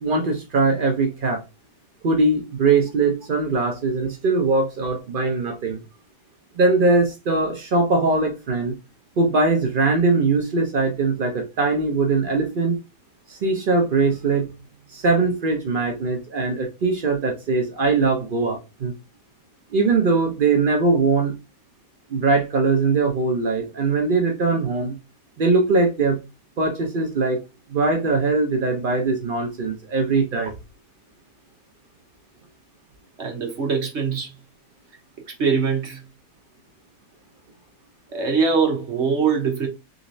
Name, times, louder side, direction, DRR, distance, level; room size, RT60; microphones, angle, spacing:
voice 1, 0.0-1.4 2.0-5.8 6.6-8.7 9.2-12.8 13.3-14.5 14.9-18.9 19.7-21.3 22.1-25.0 25.4-26.2 26.6-27.4 27.7-30.6, right 3 dB, 90° right, 0.4 m, -21 dB
voice 2, 33.2-34.3 35.3-36.0 38.1-39.7, right 5 dB, 50° right, 1.2 m, -22 dB
3.9 x 3.0 x 2.6 m
omnidirectional pair, 1.8 m